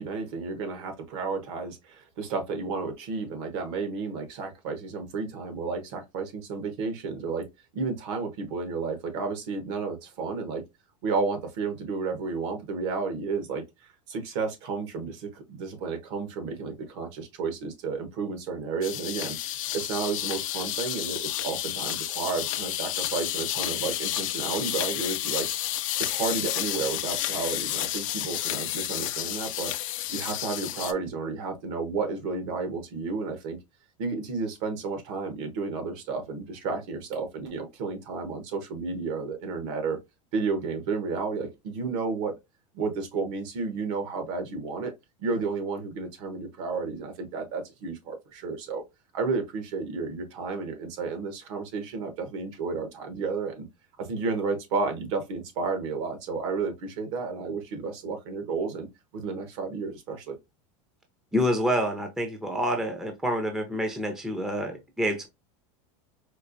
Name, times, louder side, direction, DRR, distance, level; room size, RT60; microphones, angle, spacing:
voice 1, 0.0-7.4 7.7-10.6 11.0-13.6 14.1-19.4 19.7-25.5 26.0-29.7 30.1-33.6 34.0-40.0 40.3-42.3 42.7-44.9 45.2-48.8 49.1-53.7 54.0-58.9 59.1-60.4, right 4 dB, 65° right, 1.2 m, -32 dB
sound 1, 18.8-30.9, left 14 dB, 85° left, 0.5 m, -31 dB
voice 2, 61.3-65.3, equal, 5° right, 0.6 m, -27 dB
4.4 x 2.5 x 2.5 m
supercardioid pair, 140°, 17 cm